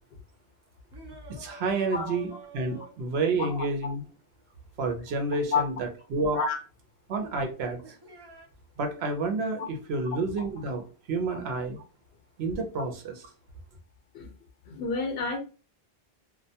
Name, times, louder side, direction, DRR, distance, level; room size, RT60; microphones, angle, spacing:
sound 1, 0.9-3.5 6.1-6.2 7.8-8.5, right 3 dB, 40° right, 0.3 m, -48 dB
voice 1, 1.3-4.0 4.8-6.4 7.1-7.8 8.8-11.8 12.4-13.3, right 3 dB, 80° right, 5 dB, 0.9 m, -30 dB
voice 2, 14.7-15.4, left 5 dB, 65° left, 3 dB, 0.8 m, -29 dB
2.2 x 2.1 x 2.7 m, 0.35 s
omnidirectional pair, 1.0 m